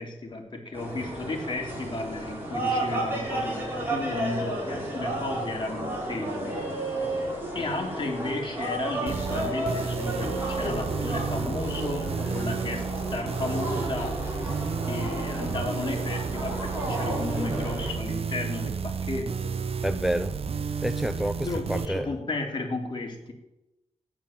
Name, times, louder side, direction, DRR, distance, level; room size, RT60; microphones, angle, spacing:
voice 1, 0.0-6.6 7.5-14.2 14.9-19.5 21.4-23.3, left 2 dB, 40° left, 0 dB, 3.5 m, -34 dB
sound 1, 0.7-17.9, right 1 dB, 20° right, 6.4 m, -32 dB
sound 2, 9.1-21.9, right 6 dB, 55° right, 0.9 m, -32 dB
voice 2, 19.8-20.4 20.8-22.1, equal, ahead, 9 dB, 0.6 m, -28 dB
14.0 x 10.5 x 7.4 m, 0.94 s
wide cardioid pair, 95°, 12 cm